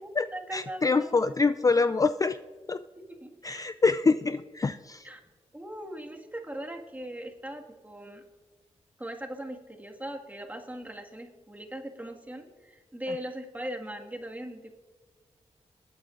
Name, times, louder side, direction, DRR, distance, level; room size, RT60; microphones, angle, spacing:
voice 1, 0.0-1.3 3.0-3.7 5.0-5.2 5.5-8.2 9.0-14.7, right 1 dB, 15° right, 2 dB, 1.8 m, -40 dB
voice 2, 0.5-2.4 2.7-2.8 3.4-5.1, left 4 dB, 30° left, 12 dB, 0.4 m, -25 dB
21.0 x 8.9 x 2.5 m, 1.5 s
cardioid pair, 50°, 12 cm